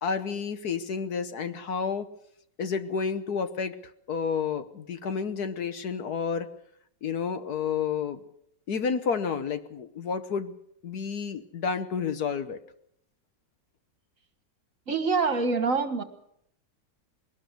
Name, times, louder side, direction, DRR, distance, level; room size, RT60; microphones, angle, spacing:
voice 1, 0.0-2.1 2.6-3.7 4.1-6.5 7.0-8.2 8.7-10.5 10.8-12.6, left 6 dB, 65° left, 10 dB, 1.5 m, -30 dB
voice 2, 14.9-16.0, right 4 dB, 50° right, 9 dB, 1.9 m, -25 dB
20.5 x 19.0 x 6.9 m, 0.73 s
omnidirectional pair, 1.9 m